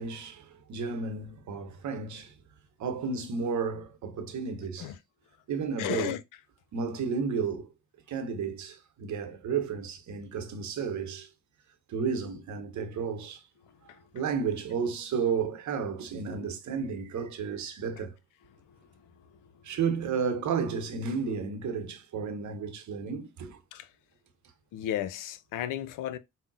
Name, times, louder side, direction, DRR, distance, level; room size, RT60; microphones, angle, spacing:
voice 1, 0.0-2.3 2.8-4.9 5.5-6.2 6.7-7.7 8.1-11.3 11.9-13.4 14.1-18.2 19.6-23.6, right 5 dB, 50° right, 0.9 m, -32 dB
voice 2, 5.8-6.2 13.9-14.0 23.7-23.9 24.7-26.2, left 11 dB, 55° left, 0.5 m, -33 dB
5.2 x 2.1 x 2.5 m
hypercardioid pair, 45°, 38 cm